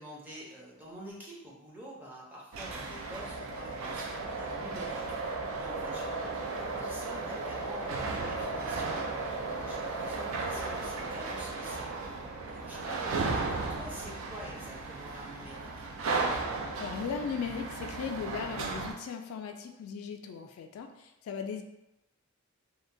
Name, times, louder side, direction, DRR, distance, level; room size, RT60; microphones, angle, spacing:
voice 1, 0.0-5.2 5.6-11.9 12.4-15.7, equal, 10° right, -5 dB, 0.6 m, -47 dB
sound 1, 2.5-18.9, right 3 dB, 75° right, 0.4 m, -35 dB
voice 2, 16.8-21.6, left 6 dB, 85° left, 10 dB, 0.3 m, -37 dB
2.7 x 2.1 x 2.5 m, 0.90 s
head